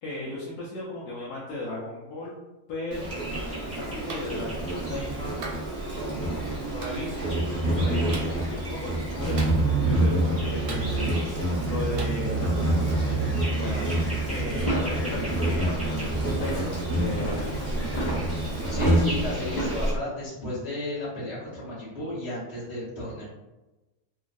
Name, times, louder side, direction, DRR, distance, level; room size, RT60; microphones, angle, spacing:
voice 1, 0.0-2.4 2.7-3.2 3.6-5.4 5.9-6.3 6.7-7.4 7.8-17.6, left 1 dB, 80° left, -7 dB, 1.1 m, -36 dB
Insect, 2.9-19.9, right 1 dB, 10° right, 0.7 m, -27 dB
Clapping, 4.1-4.3 5.4-5.6 6.8-7.0 8.1-8.3 9.4-9.8 10.7-11.2 12.0-12.2, right 3 dB, 80° right, 1.2 m, -38 dB
sound 1, 14.5-20.0, equal, 45° left, 0.6 m, -33 dB
voice 2, 18.7-23.3, equal, 25° left, -12 dB, 1.0 m, -33 dB
2.9 x 2.4 x 2.5 m, 1.1 s
omnidirectional pair, 1.6 m